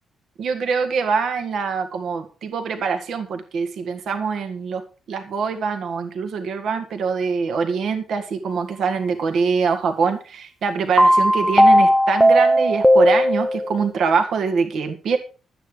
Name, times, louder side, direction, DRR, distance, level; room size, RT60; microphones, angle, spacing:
voice 1, 0.4-4.8 5.1-15.2, right 5 dB, 60° right, 6 dB, 1.7 m, -24 dB
sound 1, 11.0-13.8, equal, ahead, 0.6 m, -15 dB
12.5 x 9.0 x 5.1 m, 0.35 s
cardioid pair, 175°, 0 cm